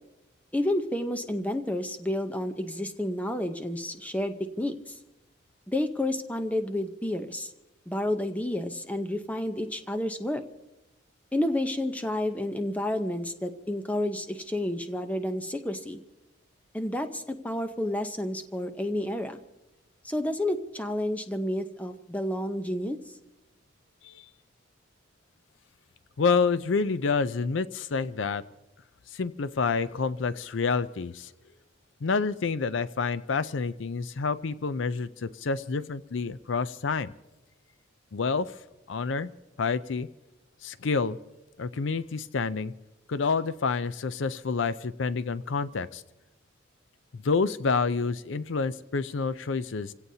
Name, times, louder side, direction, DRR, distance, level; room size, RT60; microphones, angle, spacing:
voice 1, 0.5-5.0 5.7-7.5 7.9-10.4 11.3-16.0 16.7-19.4 20.0-23.0, left 1 dB, 5° left, 7 dB, 0.8 m, -30 dB
voice 2, 26.2-28.4 29.1-31.3 32.0-37.1 38.1-38.5 38.9-39.3 39.6-40.1 40.6-41.2 41.6-42.7 43.1-46.0 47.1-49.9, left 4 dB, 70° left, 14 dB, 0.5 m, -28 dB
29.0 x 17.0 x 2.8 m, 0.98 s
head